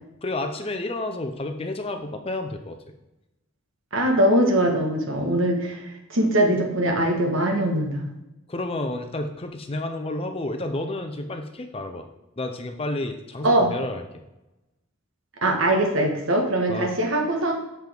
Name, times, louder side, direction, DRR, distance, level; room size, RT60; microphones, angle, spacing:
voice 1, 0.2-2.8 5.2-5.3 8.5-12.1 12.4-14.0 16.7-16.9, left 2 dB, 30° left, 6 dB, 0.6 m, -30 dB
voice 2, 3.9-8.0 13.4-13.7 15.4-17.5, right 1 dB, 70° right, 1 dB, 1.4 m, -22 dB
7.4 x 5.8 x 3.5 m, 0.93 s
head